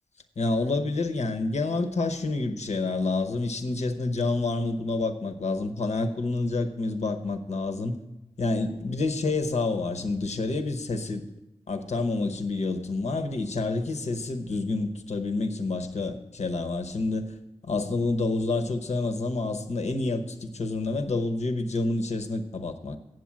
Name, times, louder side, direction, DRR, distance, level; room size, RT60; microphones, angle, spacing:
voice 1, 0.4-8.0 8.4-11.3 11.7-17.3 17.6-23.0, left 3 dB, 80° left, 6 dB, 0.8 m, -28 dB
7.8 x 7.6 x 7.3 m, 0.95 s
wide cardioid pair, 55°, 11 cm